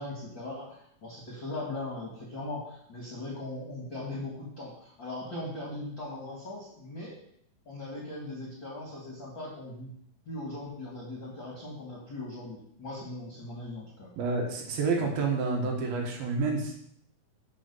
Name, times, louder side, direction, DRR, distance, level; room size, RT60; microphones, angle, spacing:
voice 1, 0.0-7.2 7.7-9.9 10.3-14.1, left 2 dB, 40° left, -4 dB, 1.8 m, -39 dB
voice 2, 14.2-16.8, right 4 dB, 70° right, 1 dB, 3.1 m, -29 dB
12.0 x 4.6 x 5.6 m, 0.68 s
omnidirectional pair, 4.7 m